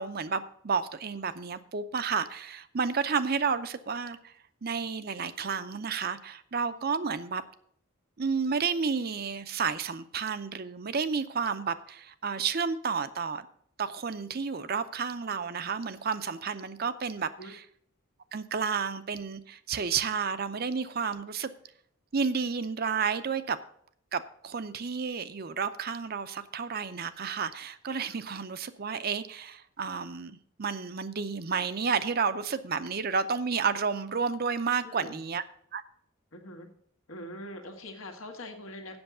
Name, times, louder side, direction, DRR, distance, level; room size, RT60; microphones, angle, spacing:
voice 1, 0.0-4.3 4.6-7.4 8.2-13.5 13.8-17.7 18.3-21.5 22.1-23.6 24.1-35.4 35.7-35.8, right 5 dB, 50° right, 12 dB, 0.6 m, -31 dB
voice 2, 34.8-35.2 36.3-36.7 37.1-39.0, left 1 dB, 90° left, 3 dB, 1.8 m, -43 dB
7.9 x 6.3 x 8.1 m, 0.65 s
head